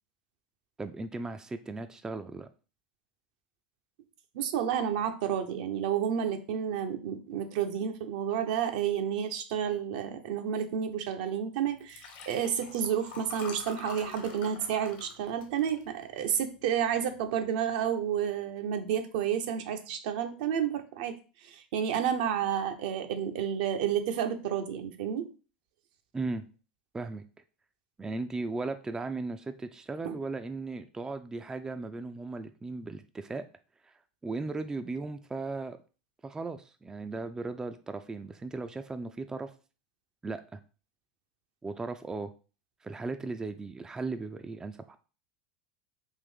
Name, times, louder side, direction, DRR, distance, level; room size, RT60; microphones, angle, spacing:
voice 1, 0.8-2.5 26.1-26.5 26.9-27.2 28.0-33.4 33.8-33.9 34.2-35.8 36.2-39.5 40.2-40.6 41.6-42.3 42.8-45.0, right 3 dB, 15° right, 9 dB, 0.3 m, -37 dB
voice 2, 4.3-21.2 21.4-25.3 30.0-30.2, right 8 dB, 65° right, 7 dB, 0.6 m, -30 dB
Liquid, 11.8-16.4 16.9-17.2 17.4-17.5, left 4 dB, 60° left, 1.2 m, -46 dB
3.6 x 2.5 x 3.5 m, 0.36 s
hypercardioid pair, 85°, 5 cm